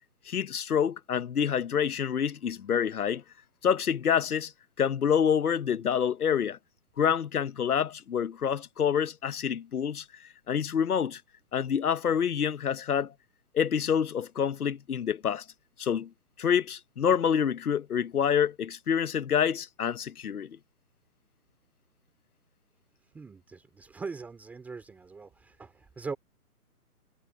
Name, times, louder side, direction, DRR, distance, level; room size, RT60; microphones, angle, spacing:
voice 1, 0.3-3.2 3.6-4.5 4.8-6.6 7.0-10.0 10.5-11.2 11.5-13.1 13.5-15.4 15.8-16.1 16.4-20.5, left 8 dB, 70° left, 1.1 m, -27 dB
voice 2, 23.1-26.2, right 4 dB, 5° right, 2.6 m, -41 dB
hypercardioid pair, 165°, 46 cm